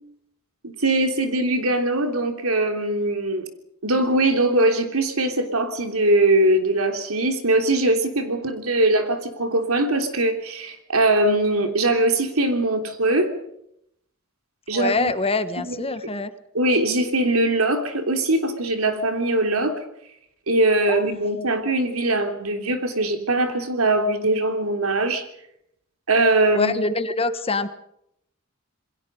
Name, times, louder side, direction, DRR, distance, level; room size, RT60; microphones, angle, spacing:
voice 1, 0.6-3.5 3.8-13.3 14.7-15.1 15.6-15.7 16.5-19.8 20.5-25.2 26.1-26.7, right 2 dB, 75° right, 6 dB, 3.3 m, -21 dB
voice 2, 14.7-16.3 20.9-21.1 26.5-27.7, left 3 dB, 25° left, 11 dB, 1.3 m, -24 dB
27.5 x 21.5 x 5.4 m, 0.75 s
head